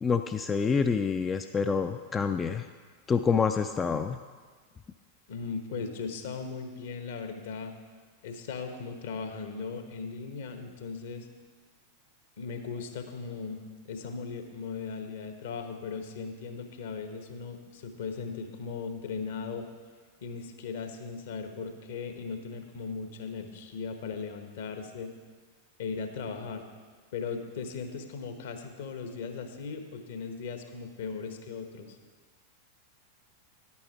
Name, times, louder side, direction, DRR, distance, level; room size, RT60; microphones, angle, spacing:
voice 1, 0.0-2.6 3.1-4.2, left 5 dB, 20° left, 7 dB, 0.3 m, -27 dB
voice 2, 5.3-7.7 8.2-11.3 12.4-19.7 20.2-25.1 25.8-26.7 27.1-32.0, left 5 dB, 60° left, 7 dB, 1.0 m, -38 dB
10.5 x 8.4 x 4.5 m, 1.5 s
figure-of-eight pair, 90°, 0 cm